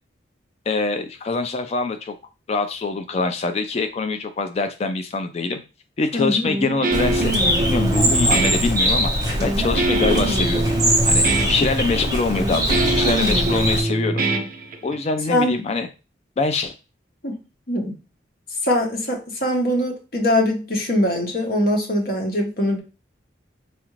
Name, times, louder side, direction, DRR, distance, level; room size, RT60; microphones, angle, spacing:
voice 1, 0.7-2.1 2.5-5.6 6.0-7.3 7.6-9.1 9.4-10.7 11.0-14.2 14.8-15.9 16.4-16.7, left 3 dB, 35° left, 8 dB, 0.3 m, -24 dB
voice 2, 6.1-6.5 15.3-15.6 17.2-17.3 17.7-17.9 18.6-22.8, left 1 dB, 50° left, 1 dB, 1.0 m, -22 dB
Guitar, 6.5-15.1, right 2 dB, 45° right, 0.5 m, -24 dB
Bird, 6.9-13.8, equal, 20° right, 0.9 m, -21 dB
4.1 x 2.4 x 3.1 m, 0.31 s
head